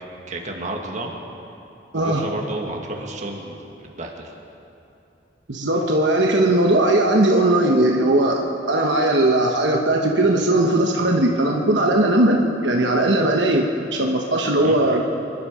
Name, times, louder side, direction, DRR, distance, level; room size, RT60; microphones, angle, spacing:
voice 1, 0.3-1.1 1.9-4.3 14.6-14.8, right 1 dB, 40° right, 1 dB, 1.8 m, -31 dB
voice 2, 5.5-8.4 8.7-15.0, right 1 dB, 70° right, 1 dB, 1.2 m, -18 dB
25.0 x 11.5 x 5.0 m, 2.8 s
head